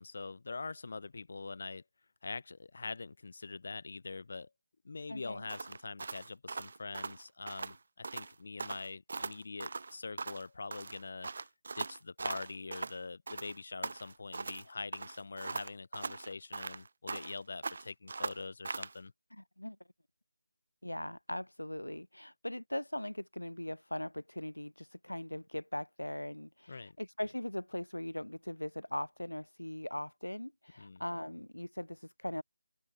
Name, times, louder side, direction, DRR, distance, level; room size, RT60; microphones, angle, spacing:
voice 1, 0.0-1.8 2.2-4.5 4.8-11.3 11.7-19.1 26.7-27.0 30.8-31.0, left 4 dB, 45° left, 4.5 m, -44 dB
voice 2, 5.1-5.5 19.4-19.8 20.8-32.4, left 1 dB, 80° left, 1.1 m, -40 dB
sound 1, 5.5-7.8 8.0-8.3 8.6-10.5 10.7-13.0 13.3-14.6 14.9-17.4 17.6-19.0, right 4 dB, 45° right, 0.3 m, -40 dB
open air
figure-of-eight pair, 155°, 0 cm